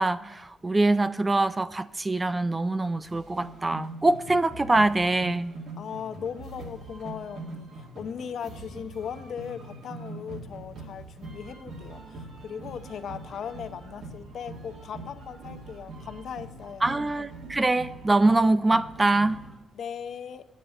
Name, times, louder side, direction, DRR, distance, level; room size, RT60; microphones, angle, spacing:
voice 1, 0.0-5.5 16.8-19.4, right 2 dB, 15° right, 14 dB, 0.3 m, -24 dB
sound 1, 3.0-19.6, right 2 dB, 75° right, 2.4 m, -43 dB
voice 2, 5.8-17.0 19.7-20.5, left 7 dB, 55° left, 10 dB, 0.6 m, -38 dB
10.5 x 9.3 x 5.5 m, 1.1 s
wide cardioid pair, 165°, 0 cm